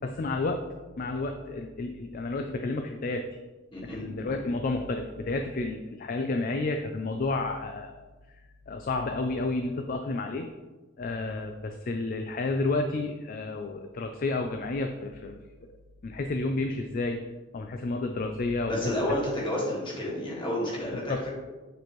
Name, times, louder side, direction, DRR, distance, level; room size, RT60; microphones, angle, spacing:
voice 1, 0.0-0.6 1.0-3.4 3.9-8.0 8.7-10.5 11.0-15.4 16.0-17.2 17.5-18.9 21.1-21.2, left 2 dB, 45° left, 5 dB, 0.4 m, -31 dB
voice 2, 3.7-4.1 18.7-21.3, left 1 dB, 25° left, -5 dB, 1.7 m, -30 dB
7.9 x 4.4 x 3.1 m, 1.2 s
head